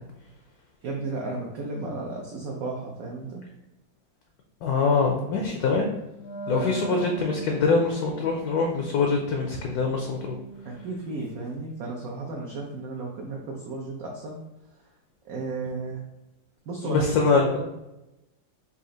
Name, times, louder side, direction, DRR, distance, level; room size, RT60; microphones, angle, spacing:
voice 1, 0.8-3.4 6.5-6.9 10.6-14.4 15.2-16.0 16.7-17.0 17.3-17.9, right 3 dB, 70° right, -1 dB, 0.9 m, -34 dB
voice 2, 4.6-5.9 6.5-10.4 16.8-17.5, left 4 dB, 70° left, 2 dB, 0.9 m, -24 dB
Wind instrument woodwind instrument, 6.1-11.2, right 4 dB, 40° left, 0.3 m, -40 dB
4.2 x 2.4 x 3.7 m, 0.94 s
omnidirectional pair, 2.0 m